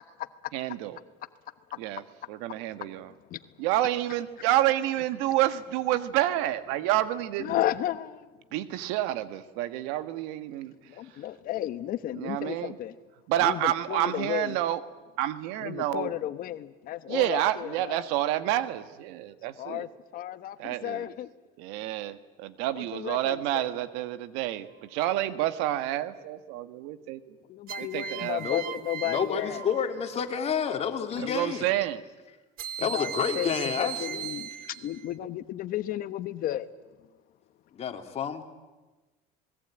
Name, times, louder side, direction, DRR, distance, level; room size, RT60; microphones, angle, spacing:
voice 1, 0.5-1.0 1.8-2.0 2.3-3.1 3.6-7.6 8.5-10.7 12.1-12.8 13.3-14.8 15.2-16.1 17.1-19.9 20.6-21.1 21.6-27.4 27.8-28.4 31.2-32.0, right 14 dB, 80° right, 12 dB, 1.6 m, -29 dB
voice 2, 7.4-8.3 10.9-12.9 13.4-14.6 15.6-18.1 19.6-21.3 21.8-21.9 22.7-23.7 27.5-29.6 31.1-31.4 32.8-36.7, left 13 dB, 55° left, 12 dB, 1.2 m, -33 dB
sound 1, 24.6-25.1 27.7-30.3 32.6-35.1, right 10 dB, 60° right, 1.2 m, -38 dB
voice 3, 29.0-31.7 32.8-34.2 37.7-38.4, left 7 dB, 35° left, 5 dB, 2.9 m, -29 dB
27.0 x 21.0 x 8.9 m, 1.2 s
supercardioid pair, 115°, 17 cm